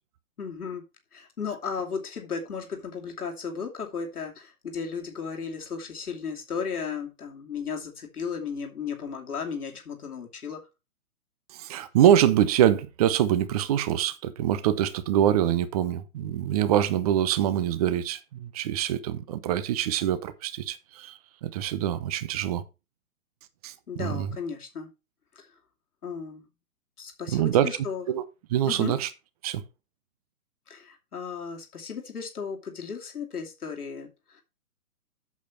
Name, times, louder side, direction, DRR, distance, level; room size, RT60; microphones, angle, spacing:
voice 1, 0.4-0.8 1.1-10.6 23.9-24.9 25.3-25.5 26.0-26.4 27.0-28.0 28.7-28.9 30.7-34.4, left 6 dB, 85° left, 2.7 m, -35 dB
voice 2, 11.5-22.6 23.6-24.4 27.3-27.7 28.1-28.2 28.5-29.1 29.4-29.6, right 11 dB, 25° right, 0.8 m, -24 dB
8.3 x 6.8 x 4.4 m
hypercardioid pair, 145°, 44 cm